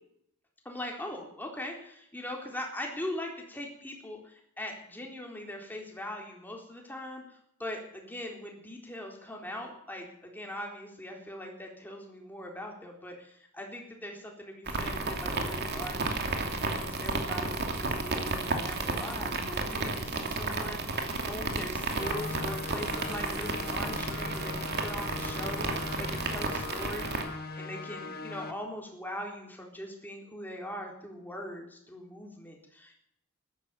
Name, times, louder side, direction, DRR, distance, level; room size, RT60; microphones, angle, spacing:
voice 1, 0.6-27.2 27.6-33.0, left 1 dB, 10° left, 1 dB, 3.9 m, -41 dB
sound 1, 14.7-27.2, right 3 dB, 50° right, 2.6 m, -32 dB
sound 2, 21.9-28.5, left 3 dB, 45° left, 1.5 m, -39 dB
15.0 x 12.5 x 7.1 m, 0.73 s
head